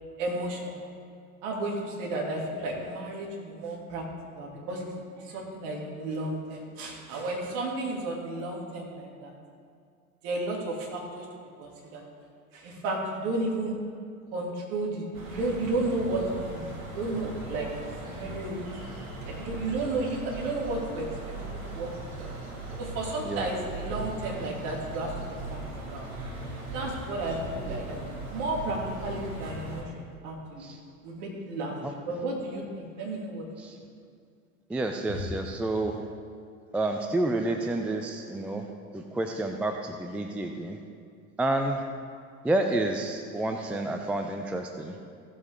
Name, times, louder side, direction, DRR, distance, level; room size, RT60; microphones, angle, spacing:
voice 1, 0.2-0.9 1.4-4.0 4.4-4.8 5.2-9.3 10.2-11.3 11.6-12.0 12.5-13.7 14.3-16.2 16.5-17.7 18.1-18.6 19.4-21.9 22.2-22.3 22.8-25.1 25.5-25.6 25.9-26.1 26.7-30.7 31.0-33.5, right 2 dB, 50° right, -1 dB, 2.6 m, -33 dB
sound 1, 15.1-29.8, right 2 dB, 75° right, 2.0 m, -39 dB
voice 2, 34.7-36.0 36.7-38.7 38.9-40.8 41.4-41.8 42.4-45.0, right 2 dB, 5° right, 4 dB, 0.3 m, -29 dB
15.5 x 7.4 x 3.6 m, 2.3 s
figure-of-eight pair, 75°, 42 cm